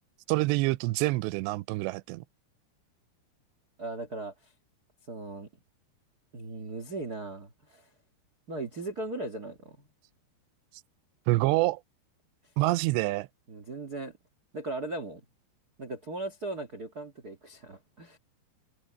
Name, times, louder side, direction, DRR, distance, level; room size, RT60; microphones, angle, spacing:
voice 1, 0.3-2.2 11.3-11.8 12.6-13.3, right 20 dB, 90° right, 2.8 m, -26 dB
voice 2, 3.8-4.5 5.1-5.5 6.3-7.9 8.5-9.9 13.5-14.1 14.5-15.2 15.8-18.2, right 2 dB, 65° right, 0.9 m, -38 dB
omnidirectional pair, 4.9 m